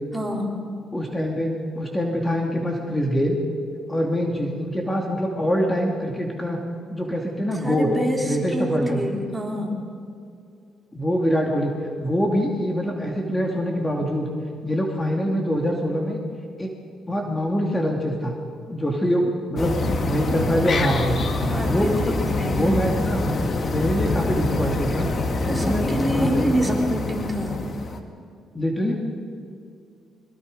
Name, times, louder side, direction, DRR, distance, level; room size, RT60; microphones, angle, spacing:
voice 1, 0.1-0.6 7.6-9.8 21.5-22.7 25.5-27.6, equal, 10° right, 0 dB, 3.6 m, -26 dB
voice 2, 0.9-3.4 3.9-6.6 6.9-7.9 8.2-9.0 10.9-11.7 12.0-14.3 14.6-16.2 16.6-16.7 17.1-18.3 18.7-19.8 20.1-21.2 21.6-23.3 23.6-25.1 25.4-26.8 28.5-29.0, equal, 15° left, 0 dB, 2.6 m, -24 dB
sound 1, 19.6-28.0, left 2 dB, 45° left, 2.1 m, -25 dB
23.0 x 22.5 x 5.3 m, 2.4 s
cardioid pair, 90°, 0 cm